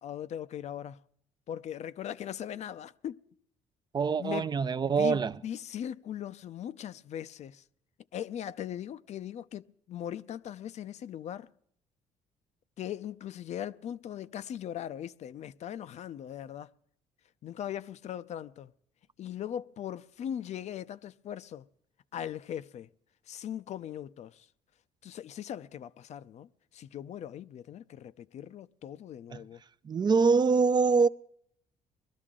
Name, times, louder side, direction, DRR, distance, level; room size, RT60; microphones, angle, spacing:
voice 1, 0.0-1.0 1.5-3.2 4.2-4.5 4.9-7.6 8.1-11.5 12.8-16.7 17.4-18.7 19.2-21.7 22.1-22.9 23.3-24.5 25.0-26.5 26.7-29.6, left 10 dB, 55° left, 0.5 m, -39 dB
voice 2, 3.9-5.3 29.9-31.1, right 5 dB, 30° right, 0.5 m, -24 dB
21.0 x 12.5 x 3.7 m
cardioid pair, 85°, 14 cm